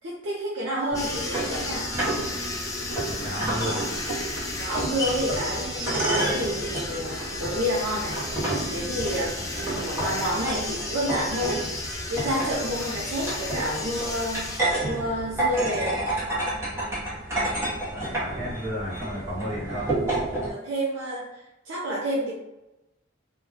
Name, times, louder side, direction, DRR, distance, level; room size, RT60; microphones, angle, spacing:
voice 1, 0.0-1.9 4.6-8.1 8.5-11.6 12.1-14.5 14.8-15.9 20.5-21.3 21.6-22.3, equal, 80° right, -5 dB, 0.5 m, -29 dB
sound 1, 0.9-14.6, left 2 dB, 15° left, 0.4 m, -34 dB
sound 2, 0.9-20.5, right 1 dB, 15° right, 0.7 m, -30 dB
voice 2, 3.1-3.8 9.4-9.5 17.9-19.9, equal, 50° right, -7 dB, 1.2 m, -33 dB
2.2 x 2.1 x 3.1 m, 0.95 s
head